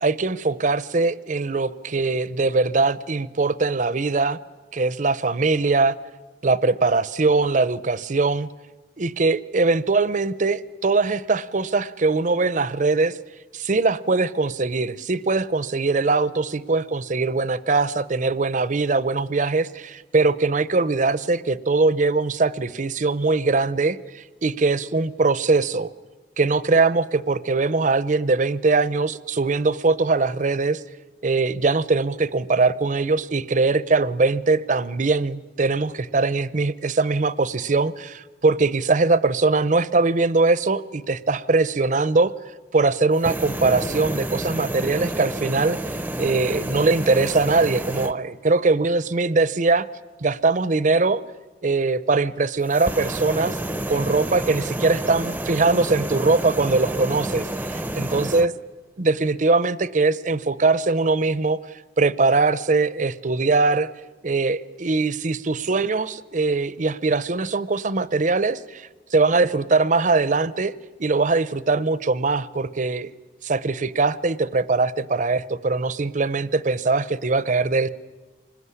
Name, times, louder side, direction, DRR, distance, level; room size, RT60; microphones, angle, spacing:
voice 1, 0.0-4.4 4.7-6.0 6.4-8.5 9.0-13.2 13.5-25.9 26.4-30.8 31.2-42.3 42.7-49.9 50.2-51.2 51.6-58.5 59.0-61.6 62.0-63.9 64.2-70.7 71.0-73.1 73.4-77.9, right 3 dB, 45° right, 17 dB, 0.7 m, -21 dB
sound 1, 43.1-48.1 52.6-58.5, right 1 dB, 10° right, 0.7 m, -29 dB
25.5 x 20.5 x 9.8 m, 1.2 s
head